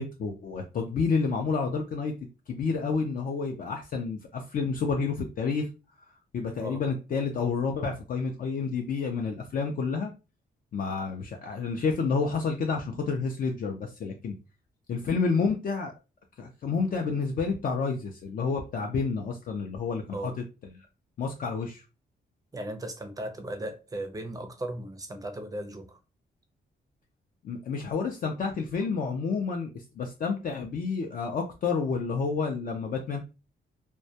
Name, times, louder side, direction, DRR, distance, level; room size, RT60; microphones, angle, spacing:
voice 1, 0.0-2.1 2.5-5.7 6.3-10.1 10.7-14.3 14.9-15.9 16.4-20.3 21.2-21.8 27.4-33.2, left 5 dB, 50° left, 0.4 m, -29 dB
voice 2, 22.5-26.0, right 1 dB, 20° right, 0.5 m, -37 dB
2.1 x 2.1 x 2.7 m
cardioid pair, 110°, 18 cm